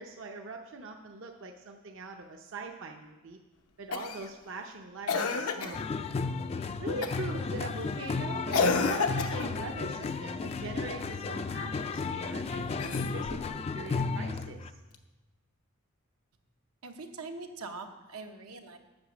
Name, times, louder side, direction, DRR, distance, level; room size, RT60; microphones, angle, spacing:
voice 1, 0.0-3.4 3.8-5.8 6.8-14.7, right 2 dB, 60° right, 3 dB, 0.7 m, -42 dB
Cough, 3.9-4.3 5.1-5.8 7.0-7.3 8.5-9.6 12.7-13.5 14.9-15.0, left 4 dB, 90° left, 0.8 m, -30 dB
sound 1, 5.7-14.7, left 4 dB, 30° left, 0.3 m, -34 dB
voice 2, 16.8-18.8, right 3 dB, 85° right, 4 dB, 1.0 m, -42 dB
8.7 x 7.1 x 6.2 m, 1.2 s
head